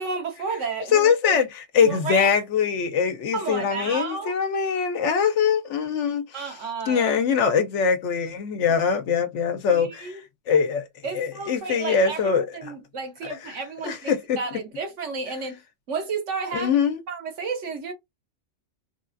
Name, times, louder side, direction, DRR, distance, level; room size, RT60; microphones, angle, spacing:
voice 1, 0.0-1.4 1.8-2.3 3.3-4.3 6.3-7.1 8.7-8.8 9.7-10.2 11.0-15.6 15.9-16.7 17.1-17.9, right 4 dB, 80° right, 1.2 m, -32 dB
voice 2, 0.9-1.5 1.7-6.4 6.9-10.8 11.1-12.7 13.4-13.6 13.8-14.4 16.5-17.0, left 6 dB, 75° left, 1.0 m, -23 dB
3.3 x 2.4 x 2.5 m
omnidirectional pair, 1.2 m